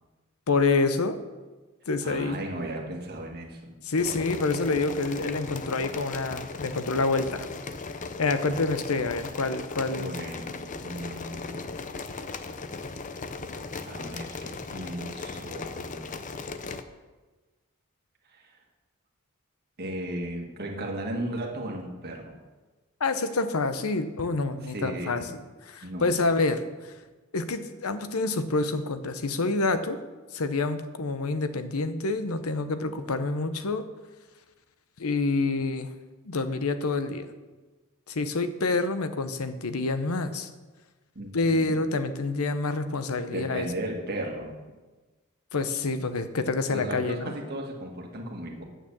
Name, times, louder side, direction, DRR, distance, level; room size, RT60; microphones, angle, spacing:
voice 1, 0.5-1.2 1.9-2.4 3.8-7.5 8.2-10.1 23.0-25.2 25.7-26.6 27.3-30.0 30.3-33.8 35.0-35.9 36.2-37.3 38.1-40.5 41.3-43.7 45.5-47.3, left 3 dB, 90° left, 10 dB, 0.8 m, -27 dB
voice 2, 2.0-3.8 9.9-11.8 13.8-16.2 18.3-18.6 19.8-22.3 24.6-25.3 25.8-26.1 41.2-41.9 43.3-44.5 46.7-48.6, right 1 dB, 50° right, 0 dB, 1.8 m, -36 dB
sound 1, 4.0-16.8, left 4 dB, 35° left, 0.6 m, -37 dB
9.0 x 6.8 x 7.2 m, 1.3 s
head